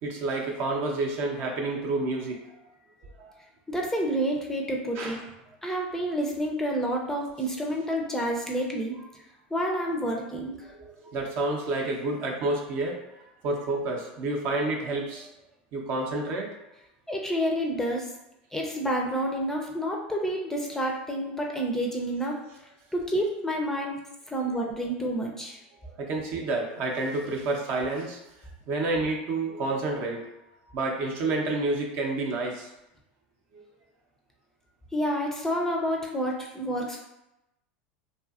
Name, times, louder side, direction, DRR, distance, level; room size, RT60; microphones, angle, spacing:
voice 1, 0.0-2.4 3.2-3.3 4.9-5.2 10.1-10.2 10.6-13.0 13.4-15.3 15.7-16.6 26.0-28.2 28.7-30.3 30.7-32.7 33.5-33.6, right 2 dB, 55° right, 1 dB, 0.6 m, -29 dB
voice 2, 3.7-5.2 5.6-8.9 9.5-10.6 17.1-18.1 18.5-22.4 22.9-24.0 24.3-25.6 34.9-37.0, equal, 10° left, -1 dB, 0.4 m, -29 dB
2.6 x 2.4 x 2.4 m, 0.90 s
supercardioid pair, 105°, 5 cm